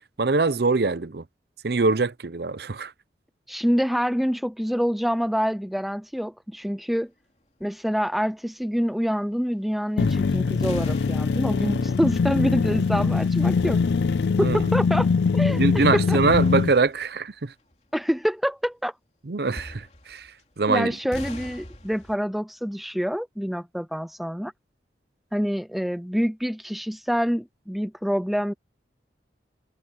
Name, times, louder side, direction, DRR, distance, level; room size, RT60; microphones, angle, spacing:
voice 1, 0.2-1.2 1.6-2.9 14.4-14.7 15.6-17.5 19.3-20.3 20.6-21.0, right 3 dB, 65° right, 0.7 m, -23 dB
voice 2, 3.5-7.1 7.6-13.8 14.4-15.1 15.3-16.2 17.9-18.9 20.7-24.5 25.3-28.5, equal, ahead, 0.3 m, -26 dB
sound 1, 10.0-16.7, left 4 dB, 75° left, 0.4 m, -22 dB
sound 2, 10.6-14.4 14.7-15.0 16.2-17.3 17.7-17.8 19.5-20.5 21.1-22.1, left 1 dB, 40° left, 3.3 m, -41 dB
head